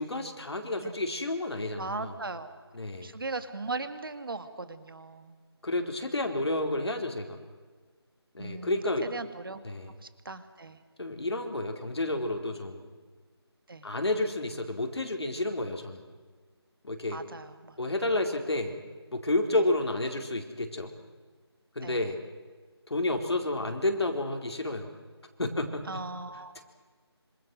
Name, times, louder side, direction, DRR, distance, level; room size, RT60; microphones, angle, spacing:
voice 1, 0.0-2.1 2.7-3.1 5.6-7.4 8.3-9.1 9.6-9.9 11.0-12.9 13.8-16.0 16.8-17.2 17.8-18.8 19.1-20.9 21.7-22.2 22.9-24.9 25.4-26.0, left 2 dB, 70° left, 4 dB, 4.4 m, -30 dB
voice 2, 1.8-2.6 3.0-5.4 8.4-9.6 10.0-10.8 13.7-13.9 17.1-17.8 21.8-22.2 25.9-26.6, right 3 dB, 55° right, 11 dB, 2.1 m, -38 dB
27.0 x 26.5 x 6.3 m, 1.5 s
figure-of-eight pair, 170°, 14 cm